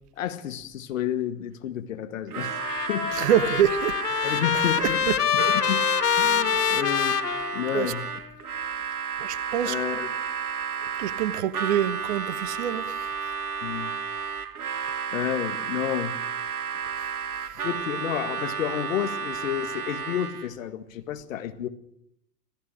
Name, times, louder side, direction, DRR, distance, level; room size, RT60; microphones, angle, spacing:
voice 1, 0.2-2.6 2.9-3.1 4.2-5.8 6.2-7.2 7.5-8.2 9.6-10.1 13.6-13.9 15.1-16.2 17.6-21.7, left 10 dB, 55° left, 2.0 m, -31 dB
Harmonica, 2.3-20.5, right 6 dB, 65° right, 1.5 m, -32 dB
Trumpet, 2.5-8.1, left 9 dB, 80° left, 0.8 m, -26 dB
voice 2, 3.2-4.4 5.4-5.5 6.6-6.7 7.7-7.9 9.2-9.8 11.0-12.9, right 9 dB, 45° right, 1.3 m, -26 dB
27.5 x 16.5 x 6.4 m
figure-of-eight pair, 105°, 47 cm